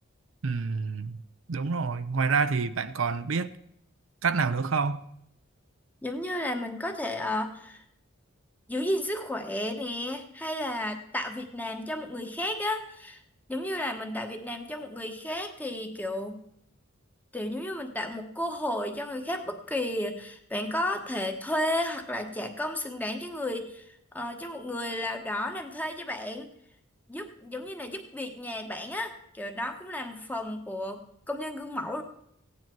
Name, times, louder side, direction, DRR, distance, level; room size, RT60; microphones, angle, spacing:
voice 1, 0.4-1.2 1.5-3.6 4.2-5.0, right 5 dB, 70° right, 0.6 m, -27 dB
voice 2, 6.0-7.8 8.7-13.2 13.5-16.4 17.3-26.5 27.1-31.0 31.3-32.0, left 1 dB, 10° left, 1.2 m, -33 dB
16.0 x 9.7 x 4.6 m
head